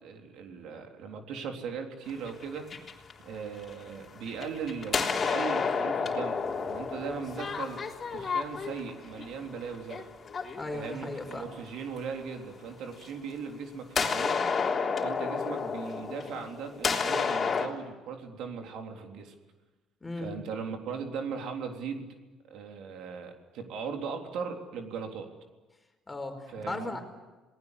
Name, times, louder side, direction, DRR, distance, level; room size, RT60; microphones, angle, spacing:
voice 1, 0.0-2.7 3.2-7.8 8.1-10.1 10.7-14.4 15.0-19.3 20.2-22.1 22.5-25.3 26.5-27.0, right 6 dB, 75° right, 3 dB, 3.6 m, -38 dB
sound 1, 2.1-3.9 4.3-11.5 13.0-13.1 14.0-17.7, left 5 dB, 35° left, 3.6 m, -31 dB
voice 2, 10.6-11.5 20.0-20.4 26.1-27.0, left 2 dB, 15° left, 5 dB, 4.6 m, -37 dB
28.0 x 19.5 x 8.3 m, 1.2 s
cardioid pair, 105°, 0 cm